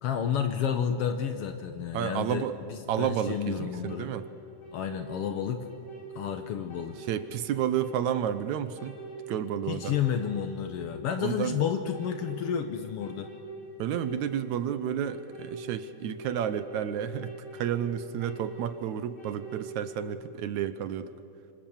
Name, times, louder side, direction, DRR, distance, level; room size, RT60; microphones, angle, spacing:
voice 1, 0.0-4.1 4.7-5.7 6.1-7.0 9.7-13.3, left 8 dB, 85° left, 7 dB, 1.3 m, -31 dB
voice 2, 1.9-2.6 2.9-4.2 7.1-8.9 9.3-9.9 11.2-11.5 13.8-21.1, right 10 dB, 70° right, 11 dB, 1.8 m, -31 dB
sound 1, 3.6-20.0, right 1 dB, 40° left, 7.7 m, -44 dB
26.0 x 25.5 x 7.3 m, 2.5 s
omnidirectional pair, 4.1 m